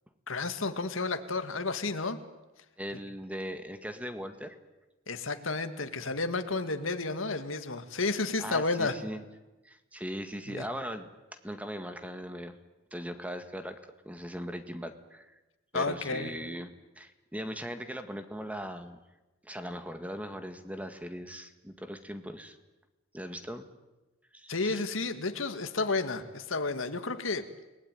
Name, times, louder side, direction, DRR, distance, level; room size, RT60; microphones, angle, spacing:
voice 1, 0.3-2.2 5.1-9.0 10.5-10.6 15.7-16.3 24.5-27.5, left 3 dB, 85° left, 8 dB, 2.1 m, -31 dB
voice 2, 2.8-4.6 8.4-9.2 9.6-11.1 11.4-12.6 12.9-15.4 15.7-19.0 19.4-22.6 23.1-23.7 24.3-24.8, equal, 10° right, 8 dB, 1.9 m, -39 dB
29.5 x 20.0 x 9.4 m, 1.1 s
head